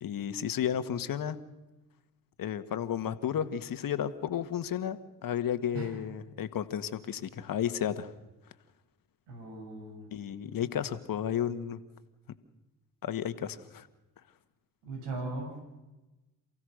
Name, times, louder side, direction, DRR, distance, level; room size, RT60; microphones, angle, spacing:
voice 1, 0.0-1.4 2.4-8.1 10.1-11.8 13.0-13.9, left 9 dB, 55° left, 11 dB, 1.8 m, -33 dB
voice 2, 9.3-10.1 14.8-15.5, right 2 dB, 80° right, 1 dB, 7.4 m, -38 dB
28.5 x 16.0 x 6.6 m, 1.1 s
hypercardioid pair, 55°, 40 cm